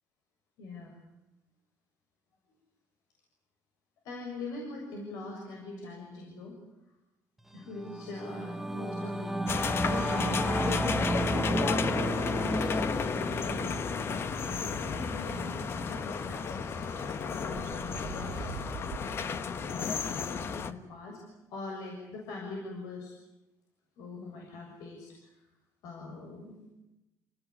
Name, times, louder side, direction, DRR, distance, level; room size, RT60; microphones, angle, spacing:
voice 1, 0.6-1.0 4.0-6.6 7.5-12.6 13.3-13.9 14.4-16.8 17.3-18.6 19.0-21.2 21.5-23.2 24.0-25.3 25.8-26.7, left 3 dB, 80° left, 0 dB, 7.0 m, -43 dB
Singing / Musical instrument, 7.5-17.2, right 1 dB, 5° right, 1.2 m, -34 dB
sound 1, 9.5-20.7, left 6 dB, 40° left, 1.5 m, -33 dB
sound 2, 13.9-19.2, right 9 dB, 75° right, 1.7 m, -49 dB
28.5 x 19.0 x 10.0 m, 0.96 s
cardioid pair, 125°, 6 cm